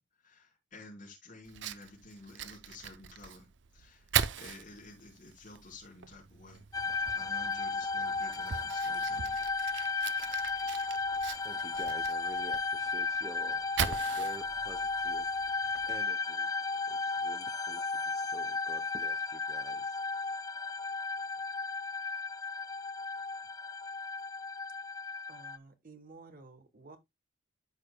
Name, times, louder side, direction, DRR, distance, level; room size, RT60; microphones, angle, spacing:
voice 1, 0.0-6.6 7.1-9.4, left 2 dB, 45° left, 4.4 m, -52 dB
Fire, 1.4-16.0, right 8 dB, 70° right, 0.5 m, -40 dB
sound 1, 6.7-25.6, left 4 dB, 20° left, 0.4 m, -34 dB
voice 2, 11.4-15.3 15.9-16.5 16.9-20.0, right 1 dB, 20° right, 0.7 m, -49 dB
voice 3, 25.3-27.0, right 3 dB, 50° right, 1.2 m, -53 dB
13.0 x 4.9 x 2.2 m
head